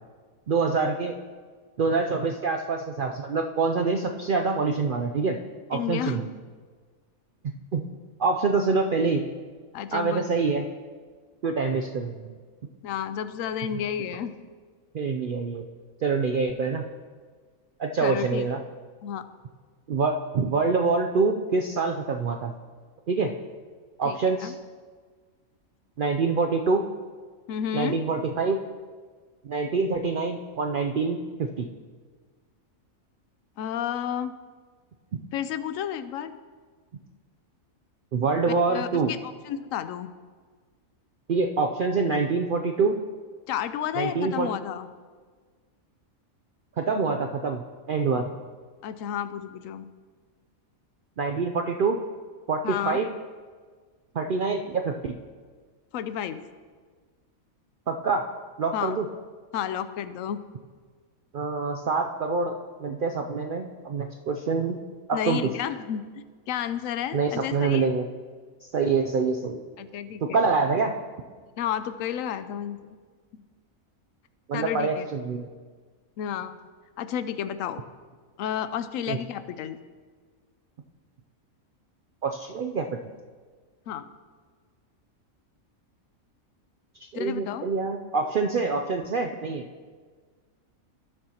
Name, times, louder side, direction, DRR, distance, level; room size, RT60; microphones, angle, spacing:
voice 1, 0.5-1.1 1.8-5.4 5.7-6.3 7.7-7.8 8.2-9.2 9.9-10.7 11.4-12.1 14.9-15.7 16.0-16.8 17.8-18.6 19.9-22.5 23.1-23.3 24.0-24.5 26.0-26.9 27.7-28.6 29.4-31.7 38.1-39.1 41.3-43.0 44.0-44.5 46.8-48.2 51.2-52.0 52.5-53.1 54.1-55.2 57.9-58.3 58.6-59.1 61.3-64.8 65.2-65.4 67.1-68.1 68.7-69.6 70.3-70.9 74.5-75.5 79.1-79.2 82.2-82.9 87.1-89.7, right 4 dB, 75° right, 3 dB, 0.4 m, -25 dB
voice 2, 5.7-6.2 9.7-10.4 12.8-14.4 18.0-18.5 19.0-19.3 24.0-24.6 27.5-28.0 33.6-34.4 35.3-36.3 38.5-40.1 43.5-44.9 48.8-49.9 52.6-53.0 55.9-56.4 58.7-59.0 59.5-60.4 65.1-67.9 69.8-70.4 71.6-73.0 73.3-73.4 74.5-75.1 76.2-76.6 77.0-77.8 78.4-79.8 83.9-84.0 87.1-87.7, left 9 dB, 75° left, 12 dB, 0.9 m, -31 dB
18.0 x 6.8 x 2.8 m, 1.5 s
omnidirectional pair, 1.5 m